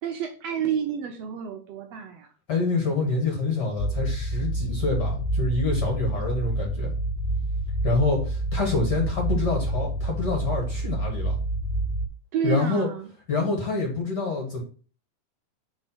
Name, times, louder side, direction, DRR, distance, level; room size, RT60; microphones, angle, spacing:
voice 1, 0.0-2.3 12.3-13.1, right 8 dB, 70° right, 4 dB, 1.7 m, -29 dB
voice 2, 2.5-6.9 7.8-11.4 12.4-12.9 13.3-14.6, left 3 dB, 40° left, 1 dB, 1.8 m, -26 dB
sound 1, 3.8-12.1, right 1 dB, 85° left, 2.5 m, -28 dB
5.4 x 4.3 x 5.8 m, 0.39 s
omnidirectional pair, 3.4 m